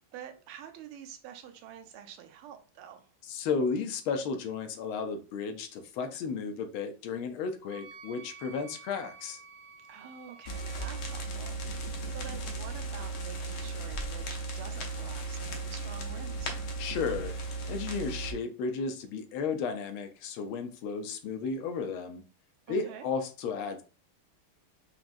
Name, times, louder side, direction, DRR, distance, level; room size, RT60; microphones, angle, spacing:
voice 1, 0.1-3.1 9.9-16.6 22.7-23.1, right 9 dB, 85° right, 1.6 m, -47 dB
voice 2, 3.2-9.4 16.8-17.4 17.7-22.2 22.7-23.8, left 5 dB, 75° left, 1.4 m, -33 dB
Wind instrument woodwind instrument, 7.7-11.3, right 5 dB, 70° right, 0.9 m, -51 dB
sound 1, 10.5-18.3, right 3 dB, 60° left, 1.1 m, -36 dB
4.8 x 3.0 x 2.5 m
omnidirectional pair, 2.4 m